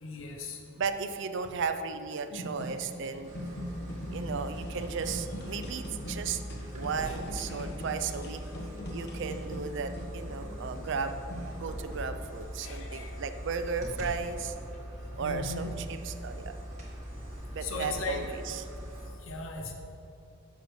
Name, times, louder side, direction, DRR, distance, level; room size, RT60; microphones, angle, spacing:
voice 1, 0.0-0.6 7.0-7.2 7.5-7.7 12.6-13.1 15.2-15.7 17.6-18.2 19.3-19.7, left 3 dB, 75° left, 2 dB, 0.8 m, -38 dB
voice 2, 0.8-3.3 4.1-6.4 6.7-8.4 8.9-11.1 11.6-14.5 15.2-16.6 17.5-18.7, right 5 dB, 60° right, 9 dB, 0.5 m, -35 dB
sound 1, 2.3-12.4, equal, 55° left, 1.1 m, -42 dB
sound 2, 3.2-19.1, equal, 35° right, 1.9 m, -41 dB
11.0 x 6.8 x 3.2 m, 2.9 s
head